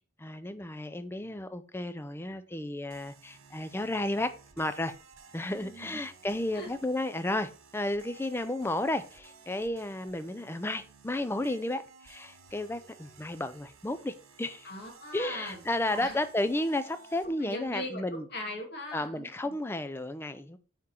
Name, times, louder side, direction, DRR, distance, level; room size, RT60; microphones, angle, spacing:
voice 1, 0.2-4.3 4.6-4.9 5.3-14.7 15.1-18.2 18.9-20.6, left 1 dB, 10° left, 0.4 m, -33 dB
sound 1, 2.9-17.7, right 4 dB, 80° right, 1.0 m, -55 dB
voice 2, 5.5-5.9 6.5-6.7 14.6-15.6 15.9-16.2 17.4-19.5, left 1 dB, 50° left, 1.8 m, -40 dB
8.8 x 3.7 x 4.3 m
head